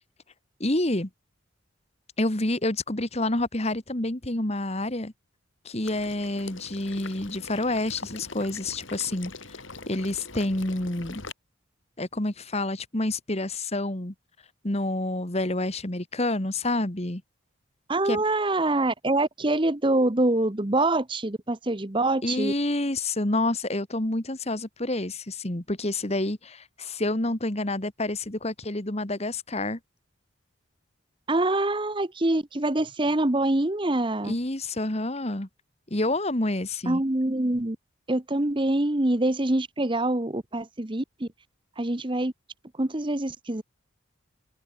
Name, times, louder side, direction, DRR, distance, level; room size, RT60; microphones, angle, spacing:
voice 1, 0.6-1.1 2.2-5.1 5.7-9.3 9.9-11.2 12.0-14.1 14.6-17.2 18.1-18.2 22.2-29.8 34.2-35.5 35.9-37.0, left 2 dB, 30° left, 1.8 m, -28 dB
Water / Liquid, 5.8-11.3, left 4 dB, 65° left, 4.5 m, -42 dB
voice 2, 17.9-22.5 31.3-34.4 36.9-37.8 38.1-41.3 41.8-42.3 42.8-43.6, right 2 dB, 25° right, 1.0 m, -25 dB
open air
head